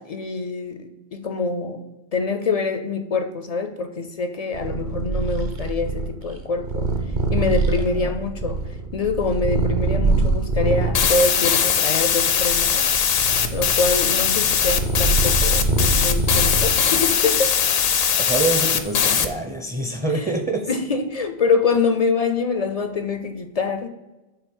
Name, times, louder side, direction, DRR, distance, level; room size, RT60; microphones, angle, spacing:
voice 1, 0.0-1.8 2.1-6.9 7.3-8.6 8.9-12.9 13.5-17.6 20.1-20.4 20.7-23.9, left 4 dB, 50° left, 7 dB, 0.5 m, -25 dB
Purr, 4.5-11.1 11.7-17.0, right 2 dB, 50° right, 0.9 m, -24 dB
sound 1, 10.9-19.3, left 8 dB, 75° left, 0.8 m, -20 dB
voice 2, 18.2-20.7, right 3 dB, 10° right, 2 dB, 0.5 m, -26 dB
5.8 x 4.0 x 5.3 m, 1.1 s
omnidirectional pair, 1.0 m